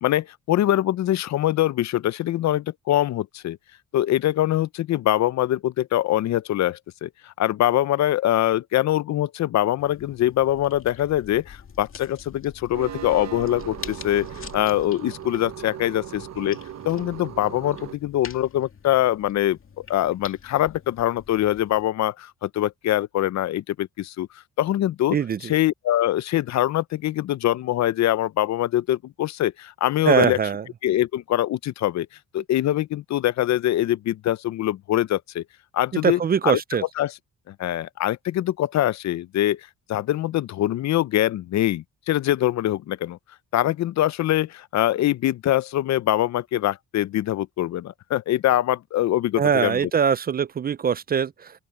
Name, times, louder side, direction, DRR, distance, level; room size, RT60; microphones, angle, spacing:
voice 1, 0.0-3.6 3.9-14.3 14.5-16.6 16.8-19.6 19.9-24.3 24.6-30.4 30.8-32.1 32.3-35.4 35.7-36.6 37.0-37.1 37.5-39.6 39.9-43.2 43.5-49.8, left 13 dB, 65° left, 0.7 m, -23 dB
sound 1, 9.8-21.9, left 6 dB, 45° left, 2.6 m, -45 dB
sound 2, 12.7-17.9, right 10 dB, 60° right, 1.0 m, -38 dB
voice 2, 25.1-25.5 30.1-30.6 35.9-36.8 49.4-51.5, right 7 dB, 30° right, 0.4 m, -22 dB
open air
cardioid pair, 90°, 30 cm